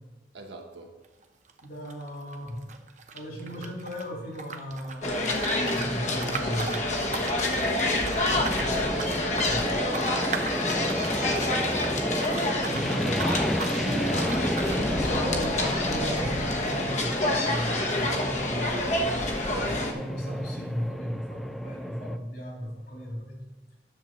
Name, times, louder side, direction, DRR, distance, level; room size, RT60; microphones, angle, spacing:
voice 1, 0.3-1.0 7.5-9.4, right 2 dB, 75° right, 3 dB, 1.3 m, -46 dB
sound 1, 1.0-1.2 1.5-4.0 4.3-12.9 13.1-13.8 14.2-14.8, right 5 dB, 40° right, 0.7 m, -38 dB
voice 2, 1.6-2.6 3.1-6.8 9.4-9.7 12.5-14.1 14.8-19.2 19.5-23.4, equal, 60° left, -2 dB, 3.5 m, -36 dB
sound 2, 5.0-19.9, left 1 dB, 40° left, 1.2 m, -27 dB
sound 3, 8.3-22.2, equal, ahead, 0.3 m, -33 dB
10.5 x 7.3 x 4.0 m, 1.2 s
head